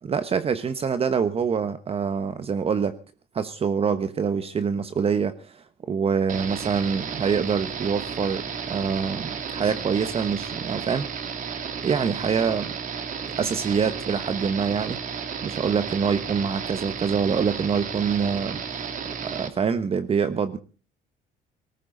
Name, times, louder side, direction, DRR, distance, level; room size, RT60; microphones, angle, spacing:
voice 1, 0.0-3.0 3.3-11.2 11.8-12.7 13.4-15.0 15.4-18.9 19.2-20.6, right 6 dB, 35° right, 1.1 m, -25 dB
sound 1, 6.3-19.5, right 6 dB, 50° right, 2.6 m, -33 dB
19.0 x 17.0 x 3.9 m
cardioid pair, 110°, 17 cm